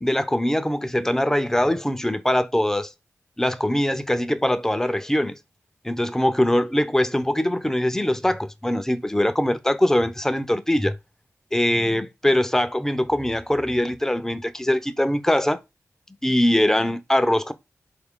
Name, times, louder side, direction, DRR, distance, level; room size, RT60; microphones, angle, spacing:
voice 1, 0.0-2.9 3.4-5.4 5.8-11.0 11.5-15.6 16.2-17.5, left 1 dB, 10° left, 0.4 m, -22 dB
4.1 x 2.4 x 3.5 m
wide cardioid pair, 90°, 6 cm